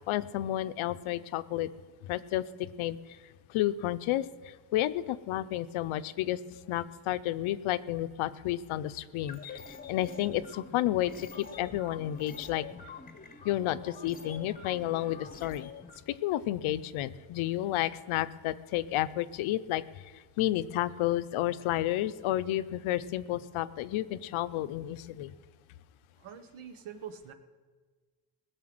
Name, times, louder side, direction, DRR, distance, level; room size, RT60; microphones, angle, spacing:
voice 1, 0.1-1.7 2.1-3.0 3.5-4.3 4.7-6.4 6.7-12.6 13.4-15.7 16.2-19.8 20.4-25.3, left 14 dB, 80° left, 14 dB, 0.7 m, -31 dB
sound 1, 9.2-16.0, left 5 dB, 20° left, 0.9 m, -46 dB
voice 2, 26.2-27.3, right 8 dB, 80° right, 9 dB, 1.4 m, -44 dB
20.0 x 6.8 x 7.8 m, 1.4 s
cardioid pair, 155°, 49 cm